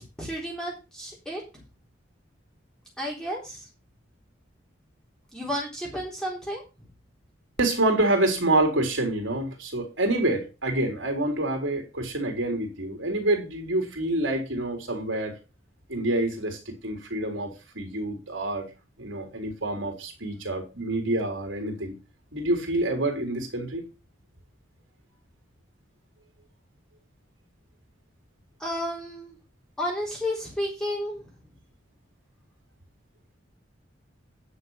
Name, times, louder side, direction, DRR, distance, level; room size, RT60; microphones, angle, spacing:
voice 1, 0.0-1.6 3.0-3.6 5.3-6.6 28.6-29.3 29.8-31.2, equal, 5° left, 3.8 m, -32 dB
voice 2, 7.6-15.3 15.9-18.7 19.0-22.0 22.3-23.9, right 1 dB, 75° right, 3.8 m, -27 dB
10.5 x 6.5 x 5.8 m
head